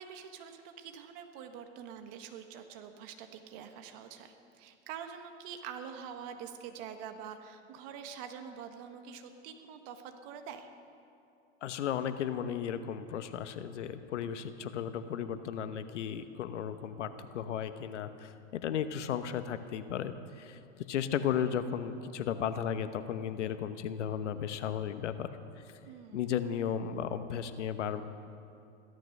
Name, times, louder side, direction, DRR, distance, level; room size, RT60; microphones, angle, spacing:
voice 1, 0.0-10.7 25.8-26.3, right 7 dB, 50° right, 6 dB, 1.6 m, -45 dB
voice 2, 11.6-20.6 20.9-25.4 26.1-28.0, left 8 dB, 85° left, 10 dB, 1.1 m, -35 dB
16.0 x 13.0 x 6.6 m, 2.6 s
supercardioid pair, 130°, 35 cm